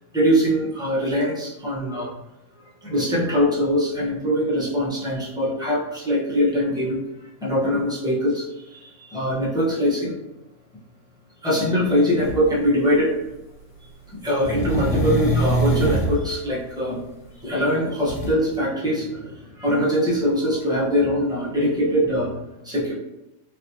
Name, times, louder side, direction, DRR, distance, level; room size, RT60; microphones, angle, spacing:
voice 1, 0.1-2.1 2.8-7.0 7.4-10.1 11.4-13.1 14.1-17.0 17.4-22.4 22.6-22.9, equal, 5° right, -6 dB, 0.5 m, -22 dB
sound 1, 12.2-12.4 14.4-16.2 18.1-18.3, right 1 dB, 60° left, 1.2 m, -23 dB
3.3 x 2.8 x 2.8 m, 0.90 s
omnidirectional pair, 1.8 m